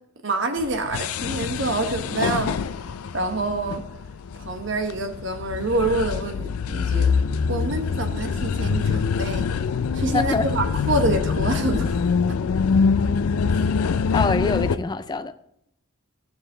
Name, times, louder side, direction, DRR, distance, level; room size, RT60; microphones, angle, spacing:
voice 1, 0.2-2.5 3.1-3.8 4.4-7.1 7.5-9.5 9.9-12.0 13.5-13.6, right 2 dB, 60° right, 1.1 m, -26 dB
sound 1, 0.6-14.8, left 5 dB, 85° left, 0.4 m, -25 dB
voice 2, 10.1-10.5 14.1-15.4, left 3 dB, 20° left, 0.3 m, -24 dB
14.0 x 7.1 x 3.8 m
head